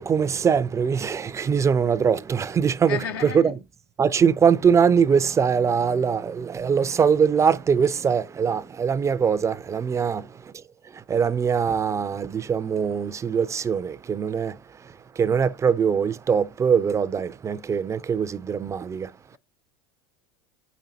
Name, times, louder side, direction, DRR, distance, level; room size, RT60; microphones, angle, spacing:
voice 1, 0.0-3.5 4.0-19.2, right 6 dB, 25° right, 0.4 m, -22 dB
voice 2, 2.8-3.6, left 7 dB, 80° left, 0.9 m, -32 dB
8.7 x 5.2 x 2.7 m
hypercardioid pair, 95°, 12 cm